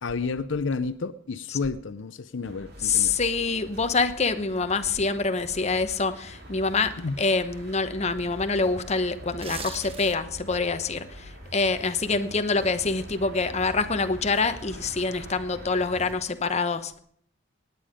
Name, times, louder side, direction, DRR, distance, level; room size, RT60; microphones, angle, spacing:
voice 1, 0.0-3.1 7.0-7.2, left 4 dB, 75° left, 13 dB, 0.6 m, -30 dB
sound 1, 2.5-16.1, right 1 dB, 55° right, 3.3 m, -44 dB
voice 2, 2.8-17.0, left 4 dB, 35° left, 9 dB, 1.0 m, -26 dB
sound 2, 9.3-10.4 10.8-11.0, right 5 dB, 30° right, 1.3 m, -39 dB
18.5 x 9.4 x 5.1 m, 0.63 s
head